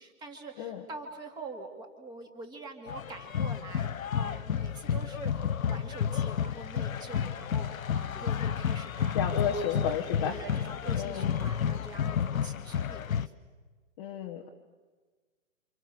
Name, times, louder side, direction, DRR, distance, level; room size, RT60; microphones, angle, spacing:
voice 1, 0.0-13.3, right 2 dB, 10° right, 5 dB, 2.3 m, -45 dB
sound 1, 2.9-13.3, left 8 dB, 75° left, 0.9 m, -31 dB
voice 2, 9.1-10.4 10.9-11.4 14.0-14.5, left 7 dB, 20° left, 1 dB, 1.2 m, -32 dB
29.0 x 27.5 x 6.9 m, 1.4 s
hypercardioid pair, 160°, 41 cm